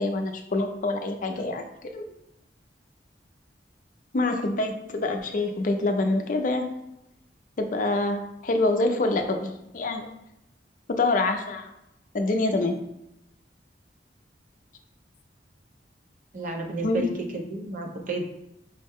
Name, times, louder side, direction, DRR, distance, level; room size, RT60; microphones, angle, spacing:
voice 1, 0.0-1.6 1.9-2.1 4.1-6.7 7.6-10.1 10.9-11.7 12.1-12.8 16.8-17.0, left 2 dB, 50° left, 4 dB, 0.5 m, -26 dB
voice 2, 16.3-18.2, right 2 dB, 50° right, 2 dB, 0.6 m, -32 dB
5.4 x 2.1 x 3.5 m, 0.86 s
head